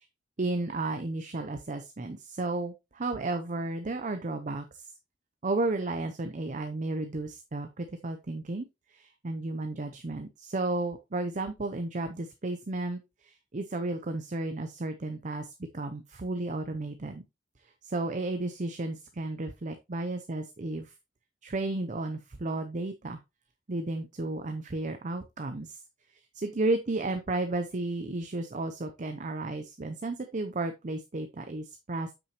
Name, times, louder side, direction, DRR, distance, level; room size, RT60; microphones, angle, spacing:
voice 1, 0.4-4.9 5.4-8.6 8.9-17.2 17.8-20.9 21.4-23.2 23.7-25.8 26.3-32.1, right 2 dB, 40° right, 7 dB, 0.6 m, -33 dB
7.8 x 6.1 x 3.0 m, 0.24 s
head